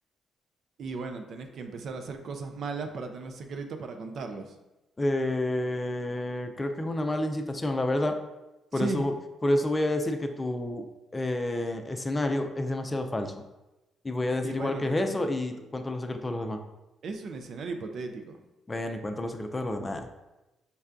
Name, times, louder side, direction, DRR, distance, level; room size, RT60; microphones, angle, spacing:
voice 1, 0.8-4.6 8.7-9.1 14.4-15.1 17.0-18.4, right 4 dB, 65° right, 6 dB, 0.4 m, -36 dB
voice 2, 5.0-8.2 8.7-9.1 9.4-10.9 11.1-13.3 14.0-16.6 18.7-20.2, left 1 dB, 25° left, 5 dB, 0.4 m, -29 dB
5.3 x 2.2 x 2.4 m, 1.0 s
hypercardioid pair, 50°, 0 cm